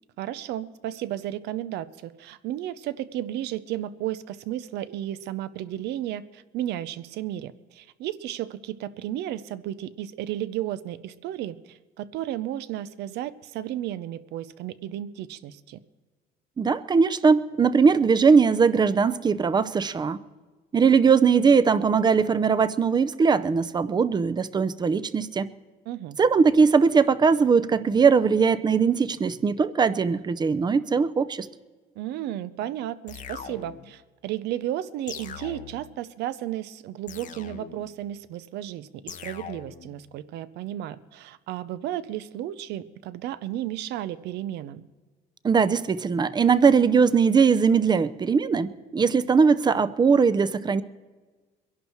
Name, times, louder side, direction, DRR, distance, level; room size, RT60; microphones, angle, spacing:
voice 1, 0.2-15.8 25.9-26.2 32.0-44.8, right 12 dB, 80° right, 15 dB, 0.7 m, -33 dB
voice 2, 16.6-20.2 20.7-25.5 26.2-31.5 45.4-50.8, right 5 dB, 25° right, 14 dB, 0.6 m, -20 dB
sound 1, 33.1-34.0 35.1-36.0 37.1-38.0 39.1-40.0, left 8 dB, 50° left, 0.8 m, -41 dB
22.5 x 11.0 x 4.5 m, 1.3 s
cardioid pair, 110°, 17 cm